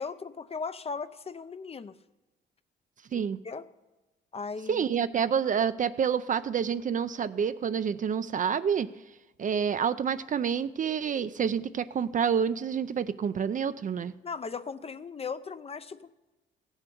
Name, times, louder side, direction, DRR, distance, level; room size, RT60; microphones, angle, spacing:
voice 1, 0.0-2.0 3.1-3.7 4.3-4.9 14.2-16.1, left 5 dB, 30° left, 13 dB, 0.5 m, -37 dB
voice 2, 4.7-8.9 9.4-14.1, right 7 dB, 40° right, 14 dB, 0.5 m, -28 dB
15.5 x 7.2 x 6.8 m, 1.1 s
cardioid pair, 90°, 20 cm